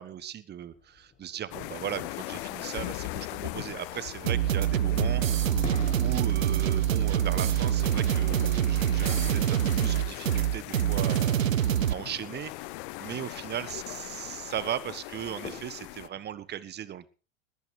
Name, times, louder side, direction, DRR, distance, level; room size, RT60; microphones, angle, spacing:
voice 1, 0.0-5.6 6.0-12.5 13.0-17.1, right 10 dB, 25° right, 17 dB, 1.3 m, -37 dB
sound 1, 0.7-16.6, left 4 dB, 20° left, 7.3 m, -50 dB
sound 2, 1.5-16.1, left 22 dB, 40° left, 0.7 m, -40 dB
sound 3, 4.3-11.9, right 10 dB, 75° right, 1.0 m, -25 dB
20.5 x 15.0 x 3.3 m, 0.36 s
figure-of-eight pair, 90°, 40 cm